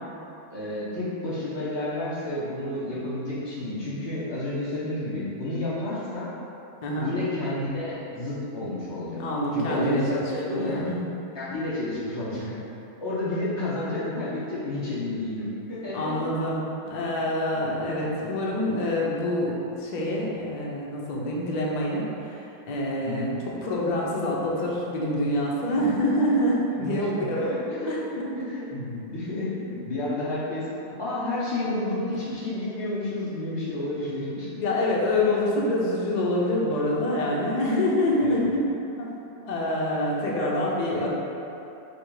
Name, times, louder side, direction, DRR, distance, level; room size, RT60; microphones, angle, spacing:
voice 1, 0.5-6.3 7.0-9.2 9.5-10.8 11.3-12.6 13.0-16.2 23.0-23.3 25.7-25.8 26.8-30.7 31.0-34.6 38.2-38.4, left 1 dB, 20° left, -9 dB, 0.8 m, -30 dB
voice 2, 9.2-11.0 15.9-23.3 23.6-28.3 34.6-38.6 39.0-39.1 39.4-41.1, left 1 dB, 80° left, -4 dB, 0.3 m, -26 dB
5.2 x 2.1 x 4.7 m, 2.9 s
omnidirectional pair, 1.7 m